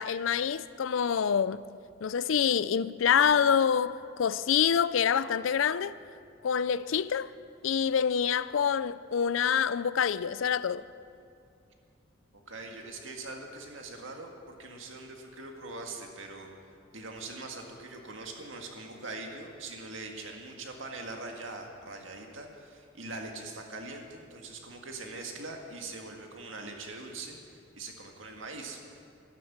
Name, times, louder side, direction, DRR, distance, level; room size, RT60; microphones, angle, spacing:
voice 1, 0.0-1.6 2.0-5.9 6.4-7.3 7.6-10.8, left 7 dB, 80° left, 0.4 m, -26 dB
voice 2, 12.5-16.5 16.9-29.0, right 2 dB, 80° right, 1.9 m, -42 dB
12.0 x 12.0 x 7.3 m
head